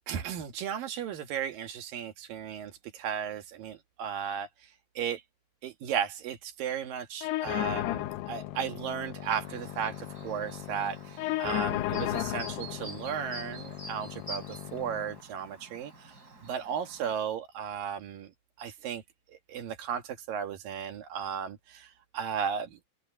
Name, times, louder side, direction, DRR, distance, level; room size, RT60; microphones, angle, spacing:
voice 1, 0.1-4.5 4.9-5.2 5.6-16.2 16.4-18.3 18.6-19.0 19.5-22.8, right 8 dB, 60° right, 3.2 m, -35 dB
sound 1, 7.2-15.2, left 16 dB, 80° left, 2.8 m, -35 dB
Chirp tweet, 9.2-17.2, right 1 dB, 25° right, 4.8 m, -48 dB
open air
omnidirectional pair, 4.8 m